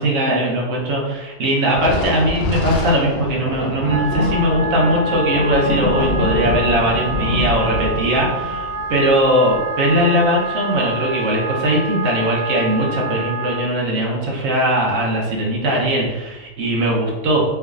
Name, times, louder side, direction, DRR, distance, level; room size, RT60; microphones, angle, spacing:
voice 1, 0.0-17.4, right 1 dB, 75° right, -3 dB, 1.1 m, -19 dB
Thunder, 1.7-10.5, left 1 dB, 60° left, 0.7 m, -26 dB
Wind instrument woodwind instrument, 3.8-13.7, right 2 dB, 45° right, 0.6 m, -27 dB
3.4 x 3.3 x 2.3 m, 1.1 s
omnidirectional pair, 1.3 m